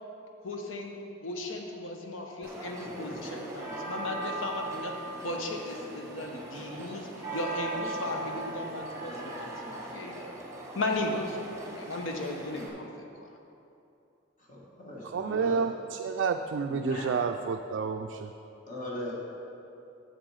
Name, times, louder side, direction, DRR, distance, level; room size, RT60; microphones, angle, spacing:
voice 1, 0.4-10.4 10.7-12.9 13.1-13.3, left 2 dB, 85° left, 2 dB, 1.0 m, -36 dB
sound 1, 2.4-12.7, right 2 dB, 15° right, 1.0 m, -39 dB
voice 2, 14.5-15.7 16.7-17.1 18.7-19.1, left 1 dB, 45° left, -4 dB, 1.4 m, -38 dB
voice 3, 15.0-18.3, right 5 dB, 65° right, 5 dB, 0.3 m, -30 dB
7.7 x 6.8 x 4.8 m, 2.7 s
head